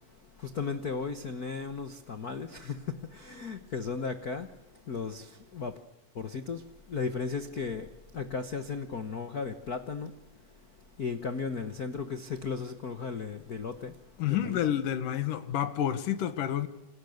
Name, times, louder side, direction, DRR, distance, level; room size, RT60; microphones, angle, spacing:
voice 1, 0.4-4.5 4.9-5.8 6.1-10.1 11.0-14.0 14.3-14.7, left 5 dB, 90° left, 0.8 m, -35 dB
voice 2, 14.2-16.7, left 10 dB, 70° left, 3.0 m, -29 dB
28.5 x 28.0 x 6.7 m
omnidirectional pair, 4.0 m